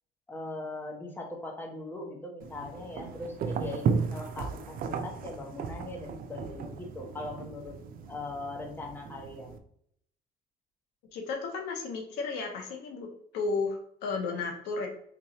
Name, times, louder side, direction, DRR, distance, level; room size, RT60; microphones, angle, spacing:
voice 1, 0.3-7.7 8.1-9.6, left 2 dB, 10° left, 0 dB, 0.8 m, -40 dB
sound 1, 2.4-9.6, right 6 dB, 60° right, 0.4 m, -35 dB
voice 2, 11.1-13.1 13.3-14.9, left 4 dB, 90° left, 2 dB, 0.9 m, -33 dB
3.7 x 3.0 x 2.8 m, 0.68 s
cardioid pair, 110°, 17 cm